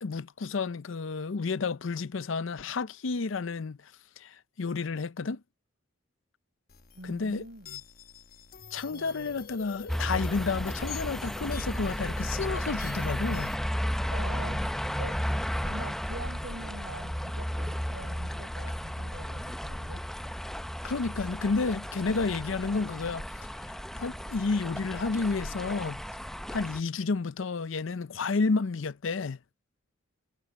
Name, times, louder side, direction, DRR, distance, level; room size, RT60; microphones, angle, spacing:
voice 1, 0.0-3.8 4.2-5.4 7.0-7.4 8.7-13.6 20.8-23.2 23.6-26.0 26.5-29.4, left 4 dB, 75° left, 0.6 m, -31 dB
sound 1, 6.7-13.6, left 8 dB, 45° left, 1.2 m, -47 dB
voice 2, 6.9-7.8 8.9-9.4 14.1-15.2 15.6-20.0, right 2 dB, 75° right, 4.4 m, -45 dB
sound 2, 9.9-26.8, equal, ahead, 0.6 m, -34 dB
head